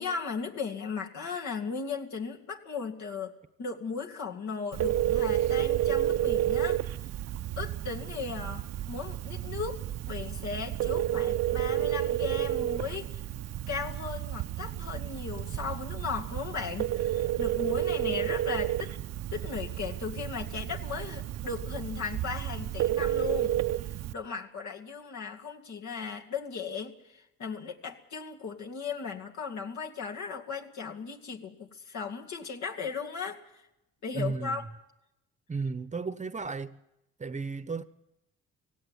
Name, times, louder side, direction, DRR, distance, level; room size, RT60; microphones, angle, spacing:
voice 1, 0.0-3.3 3.6-6.8 7.6-9.8 10.1-13.3 13.7-18.9 19.3-23.5 24.1-33.4 34.0-34.7, left 5 dB, 70° left, 2.4 m, -37 dB
Telephone, 4.7-24.1, right 12 dB, 60° right, 0.6 m, -31 dB
voice 2, 34.1-34.7 35.5-36.8 37.2-37.8, right 4 dB, 25° right, 0.9 m, -34 dB
17.0 x 16.5 x 9.5 m
cardioid pair, 90°, 30 cm